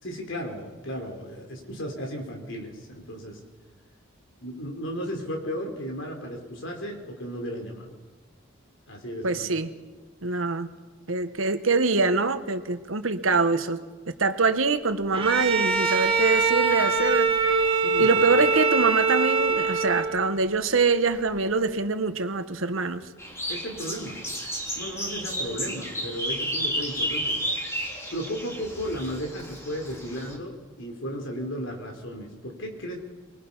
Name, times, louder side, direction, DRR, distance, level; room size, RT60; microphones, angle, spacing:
voice 1, 0.0-3.4 4.4-8.0 8.9-9.7 17.7-18.2 23.5-24.2 24.8-27.4 28.1-33.0, equal, 65° left, 2 dB, 4.3 m, -35 dB
voice 2, 9.2-9.7 10.2-10.7 11.1-13.8 14.2-17.6 18.0-23.1, right 4 dB, 85° right, 9 dB, 1.4 m, -24 dB
Bowed string instrument, 15.1-20.4, right 4 dB, 25° right, 2.1 m, -23 dB
sound 1, 23.2-30.3, equal, 15° left, 3.3 m, -32 dB
24.0 x 22.0 x 5.7 m, 1.3 s
head